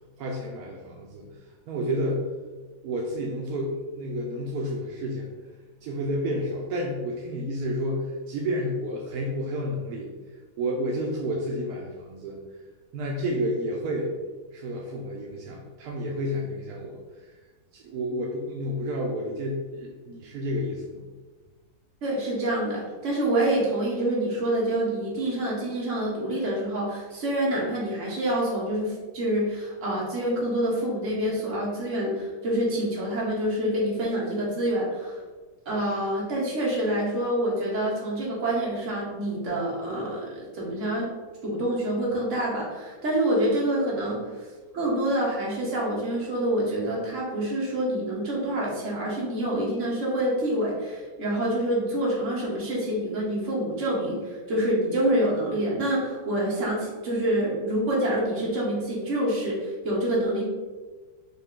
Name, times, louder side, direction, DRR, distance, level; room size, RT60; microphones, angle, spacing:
voice 1, 0.2-2.3 2.8-5.3 5.8-12.4 12.9-14.2 14.5-17.4 17.7-21.0, equal, 75° right, -1 dB, 0.9 m, -30 dB
voice 2, 22.0-35.2 35.6-41.1 41.4-44.2 44.7-60.4, right 1 dB, 45° right, -4 dB, 1.3 m, -27 dB
5.5 x 2.2 x 3.7 m, 1.3 s
omnidirectional pair, 2.1 m